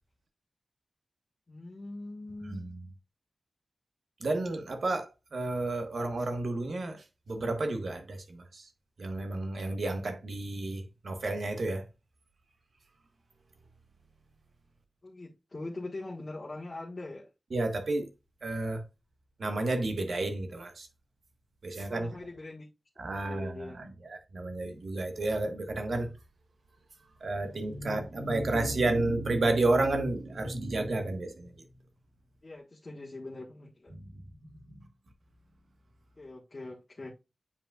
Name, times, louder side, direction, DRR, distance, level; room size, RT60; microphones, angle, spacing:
voice 1, 1.5-2.6 15.0-17.3 21.9-22.7 23.1-23.8 32.4-33.9 36.2-37.1, left 2 dB, 45° left, 1.4 m, -42 dB
voice 2, 4.2-8.6 9.0-11.8 17.5-18.1 18.4-18.8 19.4-20.9 21.6-22.1 23.0-26.1 27.2-31.5, right 2 dB, 75° right, 1.3 m, -31 dB
8.5 x 5.1 x 2.3 m
wide cardioid pair, 60°, 0 cm